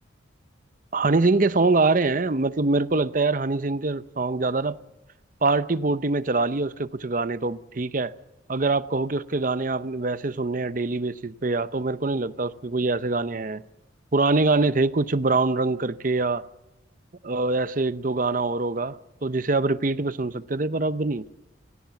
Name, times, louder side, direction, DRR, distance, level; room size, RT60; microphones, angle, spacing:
voice 1, 0.9-4.8 5.4-8.1 8.5-13.6 14.1-16.4 17.2-21.3, right 3 dB, 40° right, 0.7 m, -24 dB
30.0 x 18.0 x 7.1 m
head